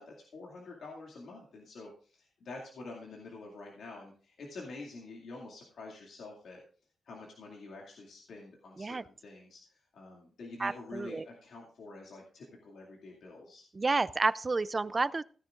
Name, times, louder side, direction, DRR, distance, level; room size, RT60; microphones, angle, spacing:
voice 1, 0.0-6.6 7.0-13.6, left 3 dB, 70° left, -2 dB, 2.3 m, -47 dB
voice 2, 10.6-11.3 13.8-15.2, right 3 dB, 25° right, 18 dB, 0.4 m, -30 dB
16.5 x 10.0 x 2.5 m, 0.43 s
wide cardioid pair, 135°, 0 cm